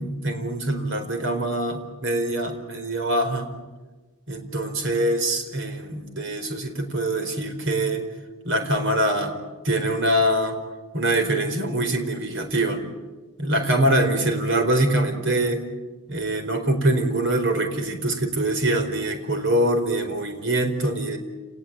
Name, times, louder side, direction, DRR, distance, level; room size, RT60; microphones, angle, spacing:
voice 1, 0.0-3.5 4.3-8.1 8.4-9.4 9.6-10.6 10.9-12.8 13.4-15.6 16.1-21.2, right 1 dB, 60° right, 6 dB, 4.5 m, -24 dB
29.5 x 19.5 x 9.1 m, 1.2 s
head